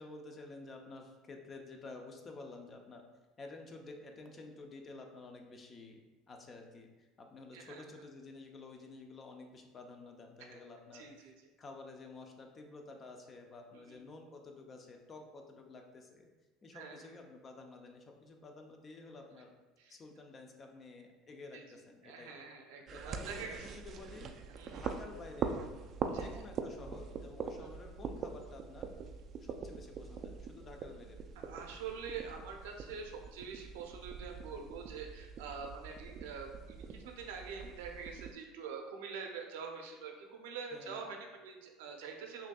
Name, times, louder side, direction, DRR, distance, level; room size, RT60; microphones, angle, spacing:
voice 1, 0.0-3.1 3.4-11.3 11.6-16.3 16.6-19.5 19.9-22.3 22.9-24.4 24.7-25.6 26.1-28.9 29.4-31.2 40.7-41.2, left 3 dB, 30° left, 3 dB, 0.6 m, -51 dB
voice 2, 7.5-7.8 10.5-10.6 10.9-11.3 13.7-14.0 16.7-17.0 19.8-20.0 21.5-21.6 22.0-23.7 24.6-24.8 26.1-26.3 27.6-27.7 31.4-42.5, right 5 dB, 90° right, 2 dB, 0.6 m, -45 dB
sound 1, 22.9-38.3, right 6 dB, 45° right, 0.3 m, -43 dB
5.8 x 2.7 x 2.3 m, 1.2 s
supercardioid pair, 105°, 0 cm